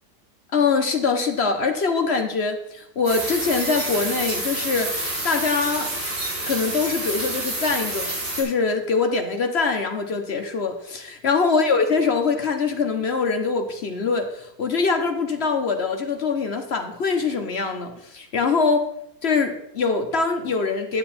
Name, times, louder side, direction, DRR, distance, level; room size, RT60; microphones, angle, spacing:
voice 1, 0.5-5.9 6.5-18.9 19.2-21.0, left 4 dB, 50° left, 5 dB, 0.8 m, -23 dB
sound 1, 3.0-8.4, right 1 dB, 55° right, 3.9 m, -28 dB
9.5 x 8.6 x 4.2 m, 0.77 s
omnidirectional pair, 2.1 m